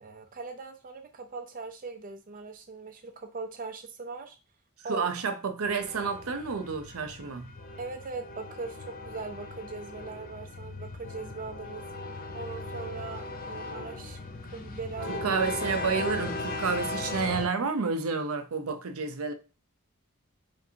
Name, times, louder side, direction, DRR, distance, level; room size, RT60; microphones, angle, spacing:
voice 1, 0.0-4.4 4.8-5.1 7.8-11.8 12.3-14.2 14.5-15.4, right 3 dB, 40° right, 0.4 m, -40 dB
voice 2, 4.9-7.5 15.2-19.3, right 5 dB, 90° right, 0.6 m, -30 dB
sound 1, 5.6-17.5, left 2 dB, 40° left, 0.5 m, -38 dB
5.2 x 2.6 x 2.7 m
head